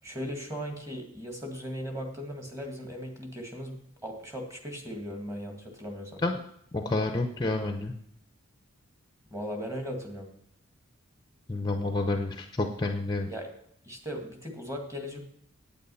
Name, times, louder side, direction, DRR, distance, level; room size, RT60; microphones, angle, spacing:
voice 1, 0.0-3.8 4.0-6.2 9.3-10.3 13.3-13.5 13.8-15.2, equal, 15° right, 2 dB, 1.9 m, -37 dB
voice 2, 6.7-7.9 11.5-13.3, left 2 dB, 20° left, 5 dB, 0.7 m, -29 dB
9.3 x 8.9 x 5.5 m, 0.71 s
head